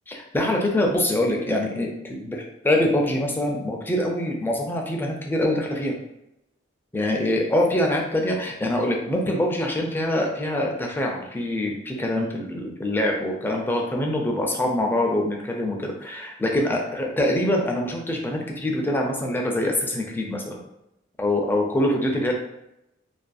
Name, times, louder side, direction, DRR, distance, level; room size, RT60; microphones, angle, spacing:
voice 1, 0.1-6.0 6.9-20.6 21.2-22.3, left 1 dB, 10° left, 0 dB, 0.3 m, -24 dB
2.5 x 2.2 x 2.3 m, 0.85 s
head